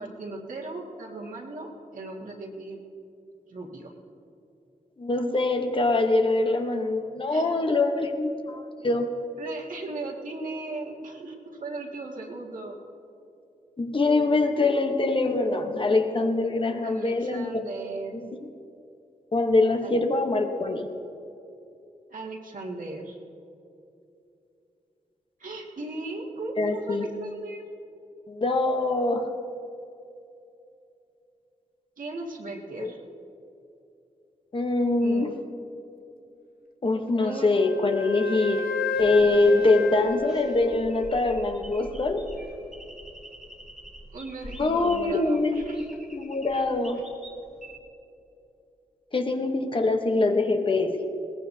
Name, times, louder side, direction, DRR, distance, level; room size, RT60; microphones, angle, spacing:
voice 1, 0.0-2.8 3.5-3.9 7.3-7.5 9.4-12.8 16.8-18.2 19.8-20.0 22.1-23.2 25.4-27.7 32.0-33.0 35.0-35.3 37.2-37.5 44.1-45.8, right 2 dB, 65° right, -1 dB, 1.9 m, -37 dB
voice 2, 5.0-9.1 13.8-17.5 18.1-18.3 19.3-20.9 26.6-27.1 28.3-29.3 32.8-32.9 34.5-35.3 36.8-38.7 39.0-42.3 44.5-45.6 46.1-47.0 49.1-51.0, left 2 dB, 35° left, 5 dB, 1.0 m, -24 dB
Wind instrument woodwind instrument, 37.2-41.4, left 5 dB, 85° left, 0.8 m, -33 dB
sound 1, 38.9-47.8, equal, 5° right, 2.0 m, -45 dB
21.5 x 18.5 x 2.7 m, 2.8 s
wide cardioid pair, 165°, 15 cm